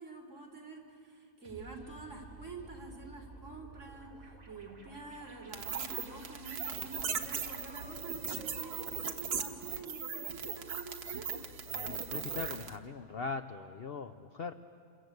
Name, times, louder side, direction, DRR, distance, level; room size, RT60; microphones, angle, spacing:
voice 1, 0.0-11.3, right 3 dB, 45° right, 0 dB, 3.8 m, -47 dB
sound 1, 1.4-9.3, right 3 dB, 25° right, 2.0 m, -53 dB
sound 2, 5.5-12.8, right 6 dB, 65° right, 1.7 m, -38 dB
voice 2, 11.7-14.5, left 5 dB, 50° left, 8 dB, 0.7 m, -40 dB
27.5 x 24.0 x 8.0 m, 2.4 s
omnidirectional pair, 1.8 m